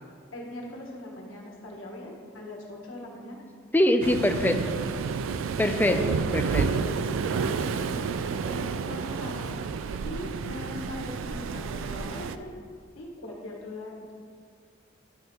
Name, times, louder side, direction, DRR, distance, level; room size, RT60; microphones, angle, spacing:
voice 1, 0.3-3.4 5.8-8.1 8.4-12.5 12.9-14.1, left 1 dB, 90° left, -1 dB, 1.5 m, -41 dB
voice 2, 3.7-4.8 5.6-6.7, left 1 dB, 10° left, 6 dB, 0.4 m, -24 dB
Waves surf, 4.0-12.4, right 5 dB, 80° right, 0.3 m, -30 dB
11.0 x 6.4 x 3.0 m, 2.2 s
head